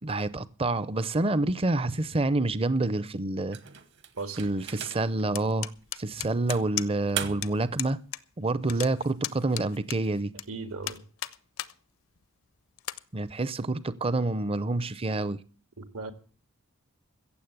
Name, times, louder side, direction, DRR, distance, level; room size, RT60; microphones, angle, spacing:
voice 1, 0.0-3.6 4.4-8.0 8.4-10.3 13.1-15.4, right 2 dB, 25° right, 0.6 m, -28 dB
sound 1, 3.5-5.2 5.8-5.9 6.5-7.7, right 9 dB, 55° right, 1.2 m, -38 dB
sound 2, 5.3-7.1 7.4-7.5 7.8-8.2 8.5-10.4 10.8-11.7 12.2-12.3 12.8-13.0, left 13 dB, 70° left, 0.6 m, -35 dB
voice 2, 10.5-11.0 15.8-16.1, right 4 dB, 80° right, 1.9 m, -37 dB
15.5 x 7.5 x 7.9 m
head